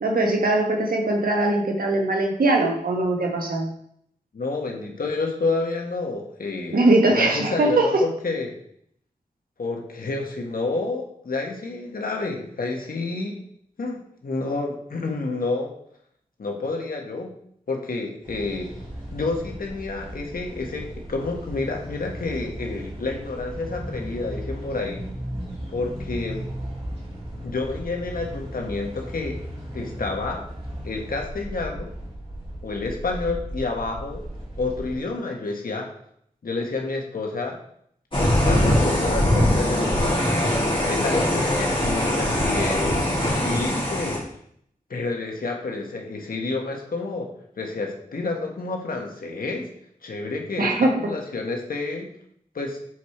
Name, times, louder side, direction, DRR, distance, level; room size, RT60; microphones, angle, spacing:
voice 1, 0.0-3.7 6.7-7.9 50.6-50.9, right 2 dB, 85° right, 2 dB, 1.4 m, -21 dB
voice 2, 4.3-6.8 7.1-8.5 9.6-13.4 13.8-15.7 16.4-17.3 17.7-18.8 19.1-25.0 25.7-26.5 27.4-29.4 29.7-30.5 30.8-31.9 32.6-34.2 34.6-35.9 36.4-37.6 38.2-40.2 40.8-44.2 44.9-49.7 50.0-52.1 52.5-52.8, left 3 dB, 80° left, 1 dB, 1.5 m, -29 dB
sound 1, 18.2-35.0, equal, 40° right, 3.4 m, -36 dB
sound 2, 38.1-44.2, left 1 dB, 35° left, 2.7 m, -22 dB
8.0 x 4.8 x 4.5 m, 0.68 s
wide cardioid pair, 65°, 15 cm